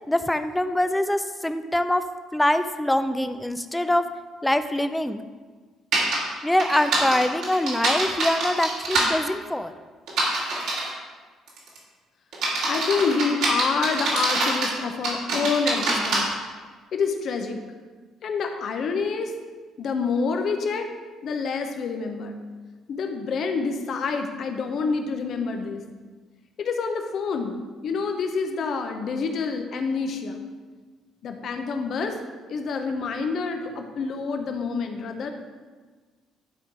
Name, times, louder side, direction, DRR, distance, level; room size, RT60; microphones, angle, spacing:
voice 1, 0.1-2.0 2.3-4.0 4.4-5.2 6.4-9.7, left 1 dB, 10° left, 10 dB, 0.5 m, -24 dB
sound 1, 5.9-6.2 6.6-9.1 10.1-10.9 11.5-11.8 12.3-14.7 15.0-16.2, right 2 dB, 80° right, 2.6 m, -24 dB
voice 2, 12.7-16.3 16.9-17.6 18.2-19.3 19.8-20.9 21.2-22.4 22.9-25.8 26.6-30.4 31.2-32.2 32.5-35.3, left 5 dB, 60° left, 5 dB, 1.0 m, -27 dB
11.5 x 3.8 x 4.7 m, 1.4 s
supercardioid pair, 80°, 0 cm